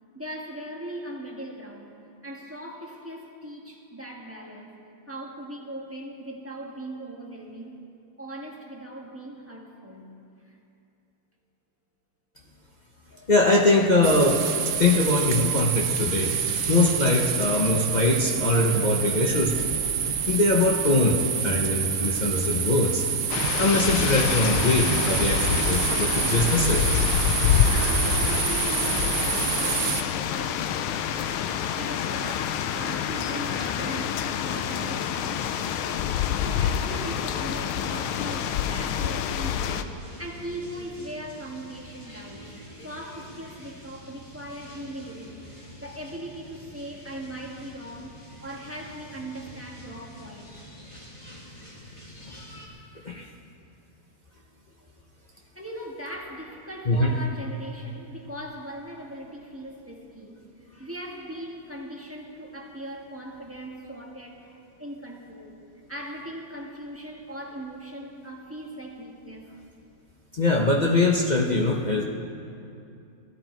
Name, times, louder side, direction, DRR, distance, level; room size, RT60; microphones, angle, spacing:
voice 1, 0.1-2.0 2.2-4.8 5.1-7.8 8.2-10.1 10.4-10.6 13.1-13.3 27.4-31.5 31.7-36.0 36.4-45.5 45.8-50.6 51.7-52.0 52.9-53.2 54.8-54.9 55.5-65.6 65.9-69.5, right 1 dB, 10° right, -1 dB, 1.1 m, -39 dB
voice 2, 13.3-16.3 16.7-19.5 20.3-23.0 23.6-26.8 52.2-52.4 53.0-53.3 56.9-57.1 70.3-72.0, left 2 dB, 55° left, -2 dB, 0.4 m, -22 dB
sound 1, 14.0-30.0, right 7 dB, 70° right, 0.7 m, -27 dB
sound 2, 23.3-39.8, left 9 dB, 85° left, 1.5 m, -27 dB
sound 3, 32.8-52.7, equal, 15° left, 2.1 m, -46 dB
18.5 x 14.0 x 4.5 m, 2.6 s
omnidirectional pair, 2.3 m